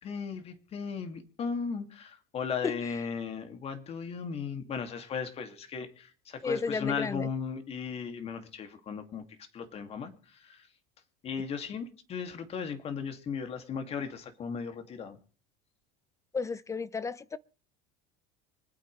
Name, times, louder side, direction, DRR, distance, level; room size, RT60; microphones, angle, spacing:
voice 1, 0.0-10.7 11.2-15.2, left 6 dB, 35° left, 2.4 m, -36 dB
voice 2, 6.4-7.3 16.3-17.4, left 4 dB, 20° left, 0.5 m, -32 dB
25.5 x 8.6 x 3.3 m
supercardioid pair, 115°, 17 cm